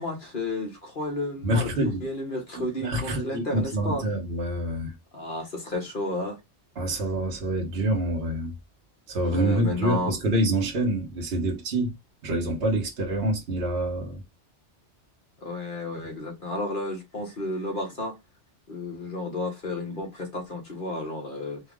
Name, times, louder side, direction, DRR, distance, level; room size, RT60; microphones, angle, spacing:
voice 1, 0.0-4.0 5.1-6.4 9.2-10.1 15.4-18.2 18.7-21.6, left 1 dB, 45° left, 1.5 m, -32 dB
voice 2, 1.4-2.1 2.5-4.9 6.8-8.5 9.1-11.9 12.2-14.2, right 1 dB, 60° right, 1.3 m, -26 dB
4.4 x 2.5 x 3.5 m
omnidirectional pair, 1.2 m